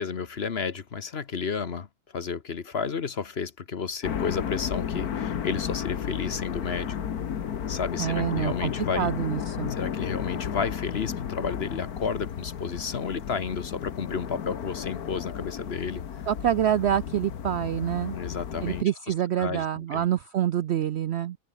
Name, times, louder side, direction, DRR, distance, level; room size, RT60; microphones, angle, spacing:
voice 1, 0.0-1.9 2.1-7.0 7.7-9.1 9.7-16.0 18.1-18.8 19.4-20.1, left 5 dB, 45° left, 1.3 m, -32 dB
sound 1, 4.0-18.8, left 8 dB, 75° left, 1.8 m, -33 dB
voice 2, 8.0-9.7 16.3-18.2 18.6-21.4, right 10 dB, 65° right, 0.6 m, -26 dB
omnidirectional pair, 1.6 m